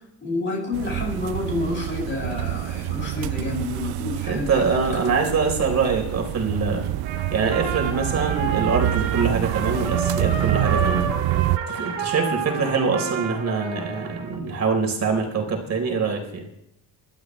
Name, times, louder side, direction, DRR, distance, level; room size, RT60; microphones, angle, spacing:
voice 1, 0.0-4.6 5.0-5.1, left 2 dB, 25° left, -2 dB, 5.8 m, -29 dB
sound 1, 0.7-11.6, right 15 dB, 55° right, 0.6 m, -27 dB
voice 2, 4.3-6.9 7.3-11.1 11.7-16.5, right 4 dB, 35° right, 2 dB, 3.9 m, -24 dB
Trumpet, 7.0-14.4, right 6 dB, 75° right, 2.4 m, -30 dB
27.0 x 12.0 x 3.2 m, 0.83 s
cardioid pair, 120°, 44 cm